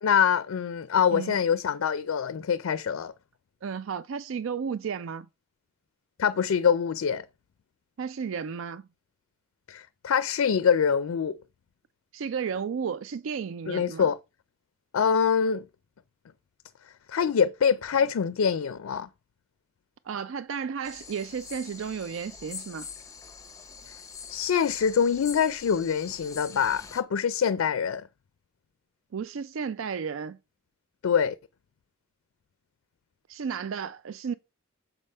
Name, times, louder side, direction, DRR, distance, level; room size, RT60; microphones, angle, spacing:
voice 1, 0.0-3.1 6.2-7.2 9.7-11.4 13.7-14.2 14.9-15.7 17.1-19.1 23.9-24.0 24.3-28.1 31.0-31.3, left 7 dB, 85° left, 0.4 m, -25 dB
voice 2, 3.6-5.3 8.0-8.8 12.1-14.1 20.1-22.9 29.1-30.4 33.3-34.3, right 6 dB, 70° right, 0.4 m, -33 dB
sound 1, 20.8-27.0, left 6 dB, 15° left, 0.6 m, -44 dB
7.0 x 3.4 x 5.4 m
head